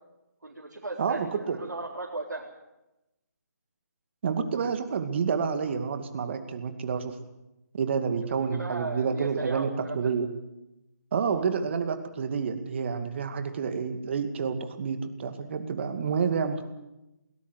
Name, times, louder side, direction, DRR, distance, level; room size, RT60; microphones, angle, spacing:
voice 1, 0.4-2.5 8.2-10.1 11.3-11.5, right 2 dB, 80° right, -2 dB, 4.1 m, -37 dB
voice 2, 1.0-1.6 4.2-7.2 7.7-9.7 9.9-10.3 11.1-16.7, right 6 dB, 40° right, 8 dB, 2.4 m, -29 dB
21.0 x 19.0 x 8.1 m, 0.94 s
figure-of-eight pair, 155°, 10 cm